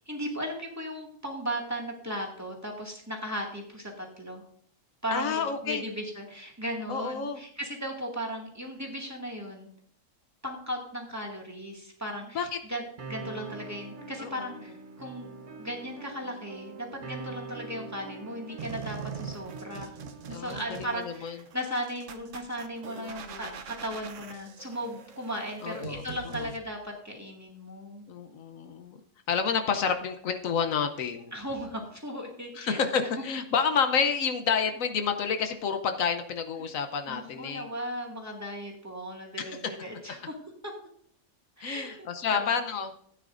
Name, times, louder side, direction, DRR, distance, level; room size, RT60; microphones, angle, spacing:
voice 1, 0.1-4.4 5.0-9.7 10.4-19.9 20.3-28.1 31.3-33.1 37.1-40.3 40.6-40.7 41.6-42.5, equal, 10° right, -1 dB, 2.1 m, -37 dB
voice 2, 5.1-5.8 6.9-7.4 12.3-12.6 14.2-14.5 20.3-21.4 22.9-23.6 25.6-26.0 26.4-26.5 28.1-29.0 29.3-31.3 32.6-37.7 39.4-39.6 41.6-42.9, left 6 dB, 75° left, 7 dB, 1.2 m, -29 dB
sound 1, 13.0-21.0, right 3 dB, 40° right, 0.9 m, -44 dB
sound 2, 18.6-26.6, right 7 dB, 65° right, 1.1 m, -43 dB
15.5 x 9.3 x 2.6 m, 0.64 s
omnidirectional pair, 1.4 m